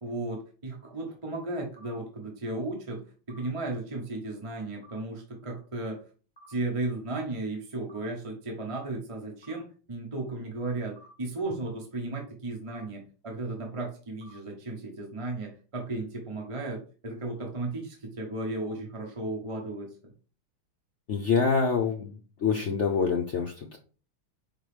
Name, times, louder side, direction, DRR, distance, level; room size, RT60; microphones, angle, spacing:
voice 1, 0.0-6.0 6.5-20.1, right 2 dB, 25° right, 1 dB, 0.7 m, -35 dB
sound 1, 1.8-1.9 3.3-3.4 4.8-5.0 6.4-6.5 7.9-8.0 9.4-9.6 11.0-11.1 12.7-12.8 14.2-14.4, right 1 dB, 15° left, 1.2 m, -53 dB
voice 2, 21.1-22.1 22.4-23.8, left 5 dB, 90° left, 1 dB, 0.6 m, -26 dB
5.0 x 3.9 x 5.0 m, 0.37 s
omnidirectional pair, 2.3 m